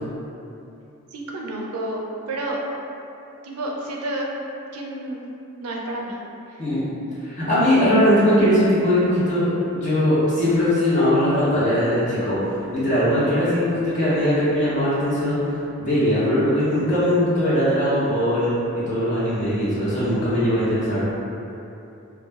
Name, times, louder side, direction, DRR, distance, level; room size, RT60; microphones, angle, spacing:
voice 1, 1.1-2.6 3.4-4.3 4.7-5.2 5.6-6.2, right 1 dB, 85° right, -1 dB, 0.4 m, -30 dB
voice 2, 7.2-9.5 9.7-15.5 15.8-18.5 18.9-21.0, equal, 35° left, -11 dB, 0.9 m, -20 dB
2.3 x 2.1 x 3.3 m, 2.8 s
head